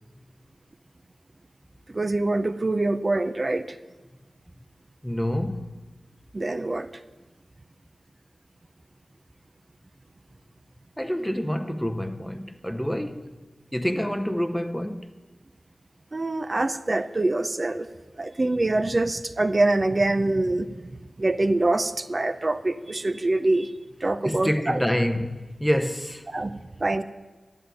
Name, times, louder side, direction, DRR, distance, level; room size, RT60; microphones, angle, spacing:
voice 1, 1.9-3.8 6.3-6.9 16.1-17.9 18.2-20.8 21.2-23.7 24.0-24.8 26.3-27.0, right 2 dB, 35° right, 0.5 m, -25 dB
voice 2, 5.0-5.8 11.0-13.4 13.7-15.1 24.2-26.2, equal, 5° left, 0.7 m, -27 dB
12.5 x 8.7 x 7.6 m
wide cardioid pair, 65°, 0 cm